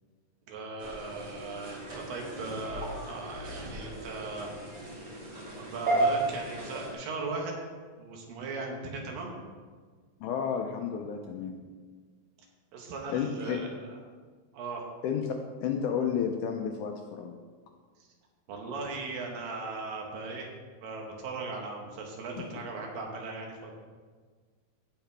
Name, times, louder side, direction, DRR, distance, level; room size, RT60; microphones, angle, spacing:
voice 1, 0.5-4.5 5.6-7.5 8.0-9.4 12.7-13.9 14.5-14.9 18.5-20.5 20.8-23.7, right 3 dB, 75° right, 1 dB, 3.0 m, -38 dB
sound 1, 0.8-6.9, right 2 dB, 35° right, 2.6 m, -34 dB
voice 2, 10.2-11.6 13.1-13.6 15.0-15.3 15.6-17.4, left 7 dB, 80° left, 3 dB, 1.9 m, -31 dB
16.5 x 5.7 x 3.4 m, 1.5 s
omnidirectional pair, 4.1 m